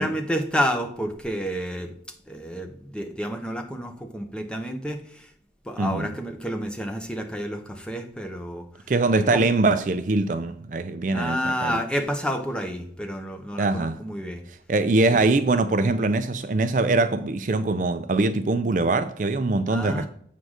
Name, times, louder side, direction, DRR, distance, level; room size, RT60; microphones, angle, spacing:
voice 1, 0.0-1.9 2.3-5.3 5.7-8.6 9.1-9.4 11.1-14.4 15.1-15.2 19.7-20.1, equal, 5° left, 0.8 m, -29 dB
voice 2, 5.8-6.1 8.9-11.8 13.6-14.0 14.7-20.1, right 3 dB, 45° right, 0.4 m, -23 dB
7.9 x 3.7 x 6.4 m
head